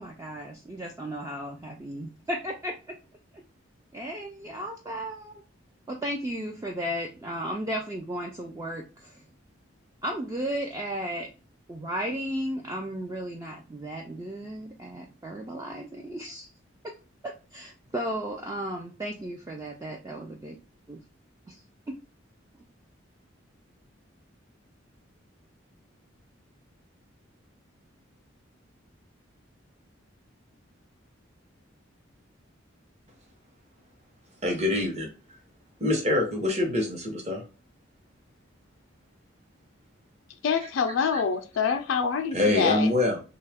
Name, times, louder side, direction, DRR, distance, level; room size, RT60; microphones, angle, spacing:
voice 1, 0.0-3.0 3.3-3.4 3.9-5.4 5.9-9.2 10.0-11.3 11.7-16.5 16.8-16.9 17.2-20.6 20.9-21.0 21.5-21.6 21.9-22.0, equal, 15° right, 1 dB, 0.3 m, -34 dB
voice 2, 34.4-35.1 35.8-37.4 41.1-41.2 41.7-41.8 42.3-43.2, left 2 dB, 35° right, 2 dB, 0.8 m, -25 dB
voice 3, 40.4-42.9, left 6 dB, 75° left, 6 dB, 0.3 m, -26 dB
2.8 x 2.3 x 3.3 m, 0.34 s
head